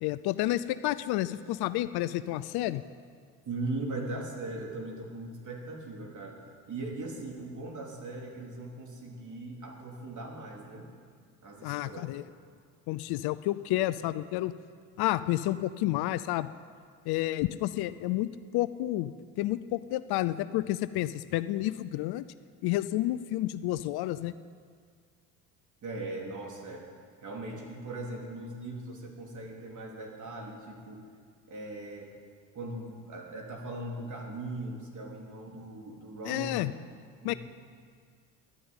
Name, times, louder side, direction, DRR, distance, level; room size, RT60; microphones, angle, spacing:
voice 1, 0.0-2.8 11.6-12.3 12.9-14.5 15.0-16.5 17.1-19.1 19.4-22.2 22.6-24.3 36.2-36.7 37.2-37.3, left 15 dB, 55° left, 14 dB, 0.6 m, -30 dB
voice 2, 3.5-6.4 6.7-10.9 11.4-12.1 25.8-26.9 27.2-31.0 31.5-32.1 32.5-36.7 37.2-37.4, right 2 dB, 40° right, 0 dB, 3.5 m, -39 dB
12.0 x 10.0 x 8.9 m, 2.1 s
hypercardioid pair, 75°, 45 cm